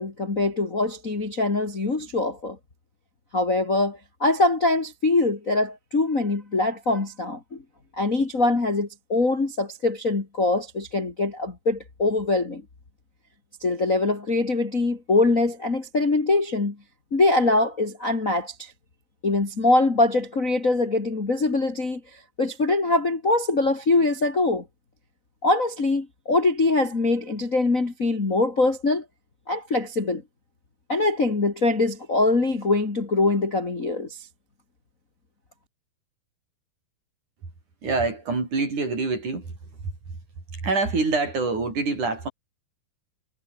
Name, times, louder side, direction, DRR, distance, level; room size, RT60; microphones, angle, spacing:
voice 1, 0.0-2.6 3.3-7.6 8.0-12.6 13.6-16.8 17.1-18.7 19.2-22.0 22.4-24.6 25.4-29.0 29.5-30.2 30.9-34.2, left 2 dB, 25° left, 2.5 m, -23 dB
voice 2, 37.8-39.6 39.8-39.9 40.5-42.3, right 3 dB, 45° right, 8.1 m, -25 dB
omnidirectional pair, 4.9 m